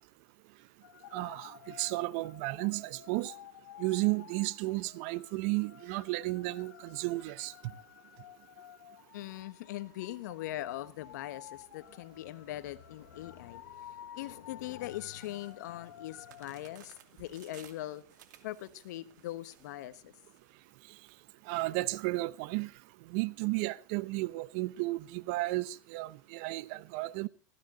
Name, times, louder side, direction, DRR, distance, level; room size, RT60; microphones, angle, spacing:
sound 1, 0.8-16.5, left 11 dB, 85° left, 0.7 m, -53 dB
voice 1, 1.1-3.3 3.8-7.5 21.5-22.7 23.1-27.3, right 21 dB, 55° right, 0.8 m, -33 dB
voice 2, 9.1-18.0 18.4-20.1, left 14 dB, 70° left, 1.3 m, -41 dB
sound 2, 15.1-21.1, right 10 dB, 75° right, 2.4 m, -59 dB
19.5 x 14.5 x 3.9 m
hypercardioid pair, 120°, 10 cm